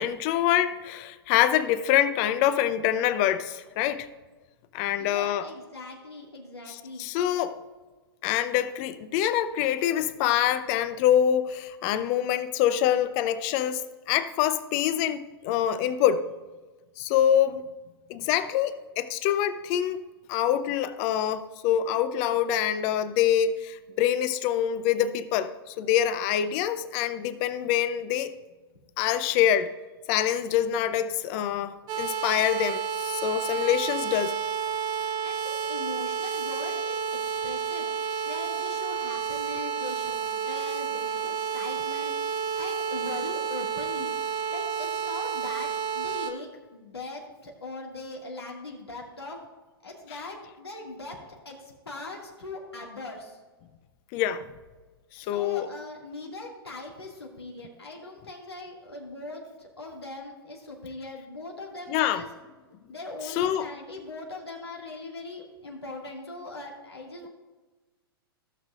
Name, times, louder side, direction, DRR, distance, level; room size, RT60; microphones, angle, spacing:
voice 1, 0.0-4.1 4.7-5.4 6.7-7.6 8.2-16.3 17.0-17.6 18.1-20.0 20.3-28.3 29.0-29.7 30.1-34.4 54.1-54.4 55.1-55.7 61.9-62.2 63.3-63.7, left 10 dB, 40° left, 0.7 m, -25 dB
voice 2, 5.0-7.0 35.2-37.0 37.2-37.9 38.3-42.1 42.5-44.1 44.5-49.4 49.8-53.4 55.2-62.3 62.9-67.3, left 2 dB, 90° left, 2.1 m, -40 dB
sound 1, 31.9-46.3, right 7 dB, 35° right, 0.9 m, -30 dB
16.5 x 6.4 x 2.5 m
figure-of-eight pair, 115°, 13 cm